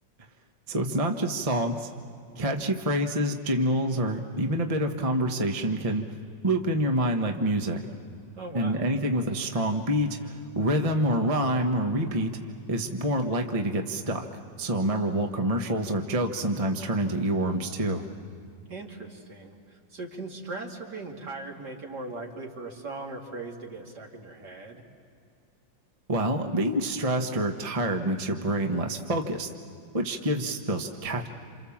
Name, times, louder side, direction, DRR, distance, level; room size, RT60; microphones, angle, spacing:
voice 1, 0.7-1.9 2.4-6.0 6.4-7.8 8.5-12.3 12.7-14.3 14.6-18.0 26.1-29.5 29.9-31.3, right 1 dB, 20° right, 4 dB, 1.2 m, -27 dB
voice 2, 8.4-8.8 18.7-24.8, right 3 dB, 60° right, 0 dB, 3.3 m, -39 dB
28.5 x 28.0 x 7.3 m, 2.5 s
omnidirectional pair, 2.0 m